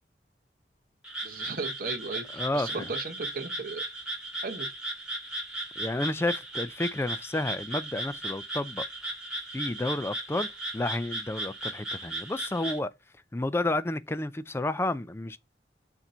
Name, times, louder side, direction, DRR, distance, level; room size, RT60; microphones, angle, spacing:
Frog, 1.0-12.8, right 1 dB, 5° right, 1.6 m, -36 dB
voice 1, 1.2-3.8 4.4-4.7, right 4 dB, 50° right, 0.8 m, -36 dB
voice 2, 2.3-2.9 5.8-8.8 9.5-10.5 10.7-12.9 13.3-15.4, left 2 dB, 15° left, 0.3 m, -31 dB
7.1 x 2.6 x 5.4 m
head